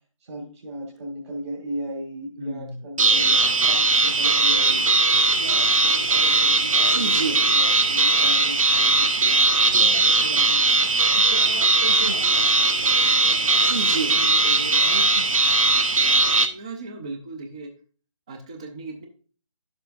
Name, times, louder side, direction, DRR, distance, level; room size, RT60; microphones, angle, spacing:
voice 1, 0.2-4.9 5.3-9.4 9.7-10.8 11.1-15.3, right 1 dB, 50° right, -2 dB, 2.0 m, -36 dB
voice 2, 2.4-2.8 3.1-3.4 16.5-17.7 18.3-19.1, right 3 dB, 10° right, 4 dB, 0.3 m, -37 dB
sound 1, 3.0-16.5, right 3 dB, 65° right, 0.9 m, -19 dB
11.0 x 6.8 x 2.6 m, 0.40 s
figure-of-eight pair, 145°, 18 cm